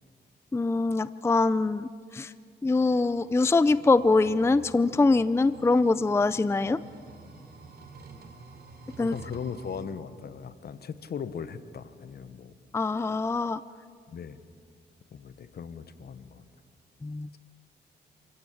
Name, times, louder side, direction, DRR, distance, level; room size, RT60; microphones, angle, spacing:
voice 1, 0.5-2.3 2.6-6.8 9.0-9.1 12.7-13.6 17.0-17.4, left 3 dB, 15° left, 15 dB, 0.4 m, -23 dB
sound 1, 2.9-9.9, right 4 dB, 60° right, 3.1 m, -49 dB
voice 2, 9.0-12.5 14.1-14.4 15.1-16.4, left 7 dB, 60° left, 12 dB, 1.1 m, -39 dB
27.0 x 15.5 x 8.6 m, 2.3 s
cardioid pair, 90°, 19 cm